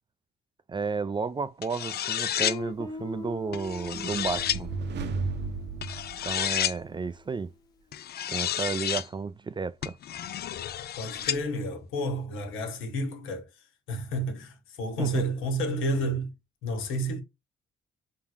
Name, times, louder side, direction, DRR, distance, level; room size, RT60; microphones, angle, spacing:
voice 1, 0.7-4.7 6.2-7.5 8.3-10.0 15.0-15.1, right 4 dB, 25° right, 0.4 m, -32 dB
sound 1, 1.6-2.6 3.5-4.6 5.8-6.8 7.9-9.1 9.8-11.4, left 10 dB, 55° left, 0.5 m, -31 dB
Guitar, 2.4-7.1, left 4 dB, 20° left, 0.8 m, -42 dB
sound 2, 3.8-7.0, right 4 dB, 60° right, 0.9 m, -35 dB
voice 2, 10.9-16.3 16.6-17.2, right 1 dB, 85° left, 1.4 m, -31 dB
4.7 x 3.7 x 2.2 m
cardioid pair, 90°, 20 cm